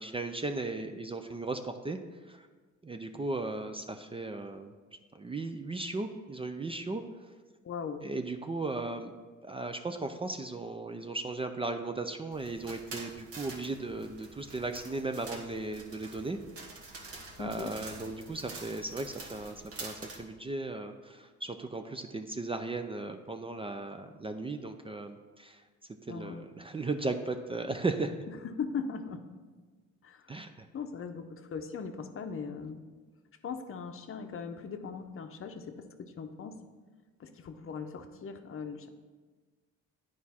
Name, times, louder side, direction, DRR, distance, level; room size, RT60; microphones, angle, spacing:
voice 1, 0.0-2.0 2.3-2.5 2.8-4.7 5.1-7.0 8.0-9.1 9.4-16.4 17.4-25.6 26.1-28.2 30.3-30.7, right 3 dB, 20° right, 7 dB, 0.4 m, -36 dB
voice 2, 7.6-8.0 17.4-17.7 26.1-26.5 28.3-29.2 30.0-30.4 30.7-32.8 33.4-36.6 37.2-38.9, left 5 dB, 45° left, 7 dB, 0.7 m, -39 dB
sound 1, 12.3-20.2, right 3 dB, 50° right, 1.3 m, -47 dB
9.3 x 4.8 x 4.2 m, 1.4 s
cardioid pair, 90°, 30 cm